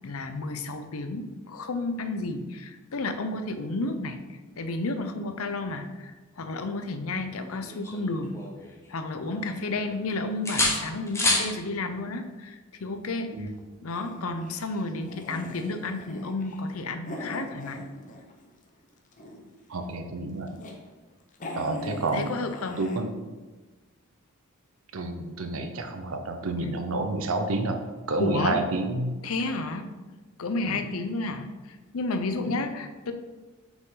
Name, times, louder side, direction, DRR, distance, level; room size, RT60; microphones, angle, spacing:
voice 1, 0.0-8.3 8.9-13.5 13.8-17.9 21.7-22.8 28.2-28.6 29.2-29.9 30.4-33.1, left 2 dB, 70° left, 8 dB, 0.6 m, -32 dB
sound 1, 7.3-8.9 9.2-10.0 10.5-11.5 13.4-13.6, left 2 dB, 15° left, 1.0 m, -29 dB
sound 2, 13.9-18.5 18.8-19.6 20.2-20.8 21.1-21.2 21.3-23.0, left 2 dB, 35° left, 0.8 m, -41 dB
voice 2, 19.7-20.5 21.5-22.3 22.8-23.1 24.9-27.8 28.1-29.1 30.6-30.8 32.5-32.6, right 2 dB, 70° right, 6 dB, 0.7 m, -29 dB
6.2 x 5.2 x 3.8 m, 1.2 s
head